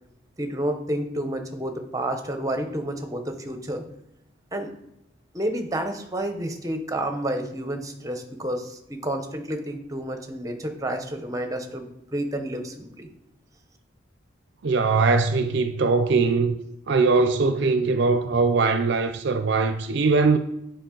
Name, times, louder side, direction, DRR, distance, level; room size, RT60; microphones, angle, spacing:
voice 1, 0.4-3.8 4.5-4.7 5.3-13.1, right 1 dB, 15° right, 0.8 m, -30 dB
voice 2, 14.6-16.5 16.9-20.4, right 4 dB, 60° right, 0.5 m, -21 dB
8.9 x 4.9 x 3.8 m
head